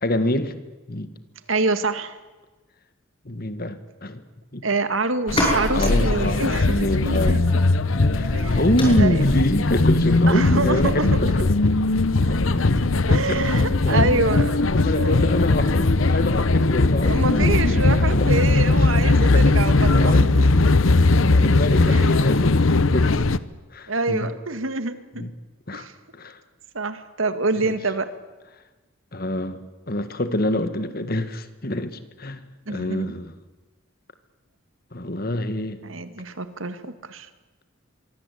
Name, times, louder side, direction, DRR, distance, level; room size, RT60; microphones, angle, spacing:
voice 1, 0.0-0.5 0.9-1.1 3.2-4.2 4.5-4.6 5.7-7.4 8.1-11.5 12.3-13.4 13.7-14.3 14.6-18.4 18.7-19.6 19.9-20.3 20.8-23.3 23.7-24.3 25.2-25.3 25.7-25.9 26.1-26.4 27.6-27.7 29.1-29.6 29.9-32.4 32.7-33.3 34.9-35.8, left 1 dB, 45° left, 11 dB, 1.9 m, -26 dB
voice 2, 1.5-2.2 4.6-7.6 8.3-9.2 10.3-11.2 13.1-14.7 15.0-15.3 17.0-20.4 21.9-22.3 23.9-25.2 25.7-25.9 26.7-28.1 32.7-33.1 35.8-37.3, right 3 dB, 75° right, 11 dB, 2.0 m, -26 dB
sound 1, 5.2-12.6, left 1 dB, 25° left, 8.0 m, -32 dB
sound 2, 5.3-23.4, left 2 dB, 75° left, 1.0 m, -19 dB
26.0 x 23.5 x 8.5 m, 1.2 s
head